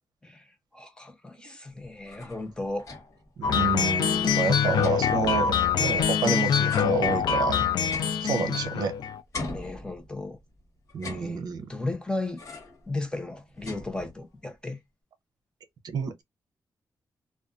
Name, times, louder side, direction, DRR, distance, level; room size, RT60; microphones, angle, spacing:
voice 1, 0.2-2.9 9.5-10.4 11.1-11.4 11.7-12.4 12.9-14.8, left 2 dB, 10° left, 0.6 m, -35 dB
sound 1, 1.8-3.3 3.6-3.7 4.0-6.2 6.7-8.9 9.3-10.4 10.9-11.8 12.4-12.9 13.2-14.4, left 2 dB, 50° left, 1.3 m, -42 dB
sound 2, 3.4-9.2, left 7 dB, 85° left, 0.4 m, -24 dB
voice 2, 3.4-7.6 8.2-8.9 10.9-11.7 15.9-16.2, right 5 dB, 70° right, 0.6 m, -29 dB
2.5 x 2.2 x 2.4 m
wide cardioid pair, 135°, 7 cm